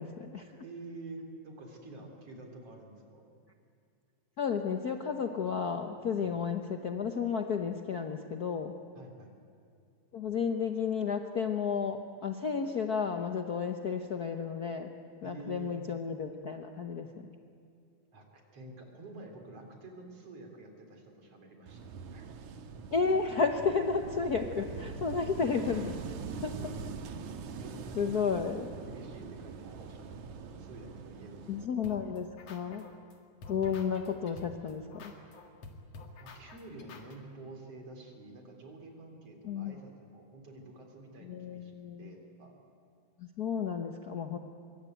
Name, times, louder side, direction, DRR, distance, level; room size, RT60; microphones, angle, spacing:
voice 1, 0.0-0.5 4.4-8.7 10.1-14.9 15.2-17.3 22.9-26.0 26.3-26.6 27.9-28.7 31.5-32.9 33.5-35.1 39.4-39.8 41.2-42.1 43.2-44.4, left 6 dB, 85° left, 5 dB, 0.8 m, -32 dB
voice 2, 0.6-3.3 6.2-6.3 9.0-9.3 15.2-15.8 18.1-22.3 26.6-26.9 27.5-28.6 28.9-31.8 36.2-41.7 42.0-42.6, right 2 dB, 55° right, 3 dB, 4.5 m, -49 dB
Wind / Waves surf, 21.7-31.7, right 5 dB, 80° right, 2.7 m, -43 dB
sound 1, 31.8-33.1 33.4-37.1, left 3 dB, 60° left, 3.1 m, -48 dB
24.5 x 23.5 x 9.2 m, 2.4 s
omnidirectional pair, 3.4 m